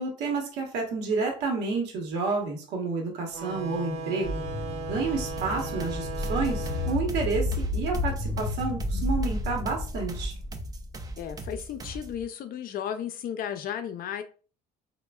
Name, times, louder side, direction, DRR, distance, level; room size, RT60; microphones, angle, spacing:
voice 1, 0.0-4.4 4.9-10.3, right 4 dB, 85° right, 0.9 m, -30 dB
sound 1, 3.3-8.5, right 2 dB, 40° right, 0.8 m, -37 dB
sound 2, 4.2-11.3, left 2 dB, 15° left, 0.9 m, -32 dB
sound 3, 5.4-12.2, right 1 dB, 20° right, 0.4 m, -40 dB
voice 2, 11.2-14.2, left 9 dB, 60° left, 0.5 m, -34 dB
3.1 x 2.1 x 2.2 m
cardioid pair, 110°, 17 cm